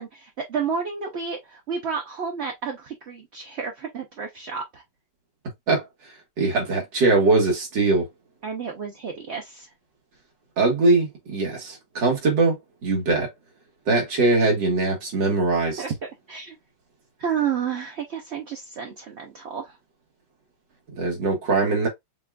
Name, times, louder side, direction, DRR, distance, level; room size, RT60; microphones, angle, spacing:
voice 1, 0.0-4.8 8.4-9.7 15.8-15.9 16.3-16.6 17.2-19.8, right 6 dB, 55° right, 0.7 m, -31 dB
voice 2, 6.4-8.1 10.6-13.3 13.9-15.8 21.0-21.9, right 3 dB, 90° right, 2.4 m, -21 dB
6.6 x 2.4 x 2.2 m
omnidirectional pair, 1.9 m